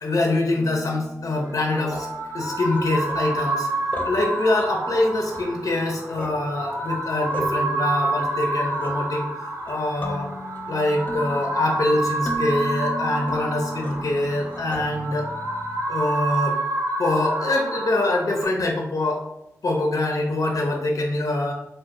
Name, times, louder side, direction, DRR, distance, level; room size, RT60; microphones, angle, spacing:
voice 1, 0.0-2.1 2.3-3.7 4.0-10.3 10.7-15.3 15.9-16.6 17.0-19.2 19.6-21.5, left 2 dB, 75° left, 1 dB, 0.5 m, -24 dB
sound 1, 0.6-15.8, equal, 25° left, 0.7 m, -38 dB
sound 2, 1.4-18.4, right 2 dB, 60° right, 0.7 m, -28 dB
4.4 x 2.1 x 2.6 m, 0.90 s
cardioid pair, 45°, 6 cm